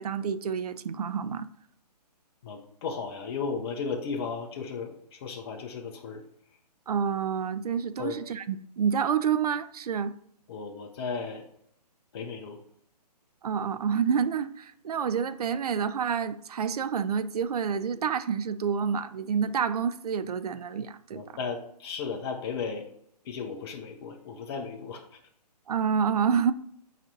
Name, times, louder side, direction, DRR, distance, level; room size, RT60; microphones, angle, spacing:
voice 1, 0.0-1.5 6.9-10.1 13.4-21.2 25.7-26.5, right 7 dB, 65° right, 0.5 m, -28 dB
voice 2, 2.4-6.2 8.0-8.2 10.5-11.5 12.1-12.6 21.1-22.9 23.2-25.0, left 5 dB, 35° left, 0.9 m, -35 dB
5.9 x 4.3 x 4.0 m
hypercardioid pair, 140°, 21 cm